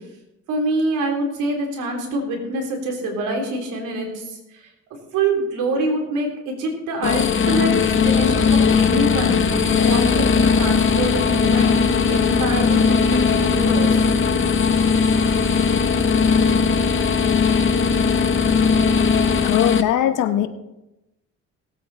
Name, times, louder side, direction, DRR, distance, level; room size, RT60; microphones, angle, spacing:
voice 1, 0.5-4.7 5.1-9.4 9.8-11.7 12.1-14.0, right 2 dB, 90° right, 1 dB, 3.4 m, -25 dB
sound 1, 7.0-19.8, left 6 dB, 40° left, 0.9 m, -19 dB
sound 2, 7.8-19.4, equal, 10° right, 1.6 m, -26 dB
voice 2, 19.4-20.5, left 11 dB, 90° left, 10 dB, 1.0 m, -20 dB
18.5 x 8.6 x 4.1 m, 0.95 s
cardioid pair, 90°, 30 cm